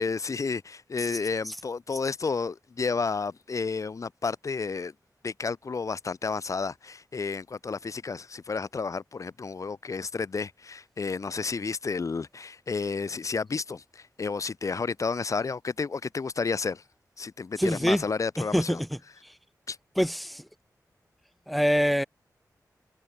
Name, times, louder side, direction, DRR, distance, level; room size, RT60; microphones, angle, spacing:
voice 1, 0.0-4.9 5.2-16.8 17.2-18.8 19.7-19.8, left 4 dB, 55° left, 4.1 m, -31 dB
voice 2, 17.6-18.0 18.4-18.9 20.0-20.4 21.5-22.0, equal, ahead, 2.5 m, -25 dB
wide cardioid pair, 140°, 7 cm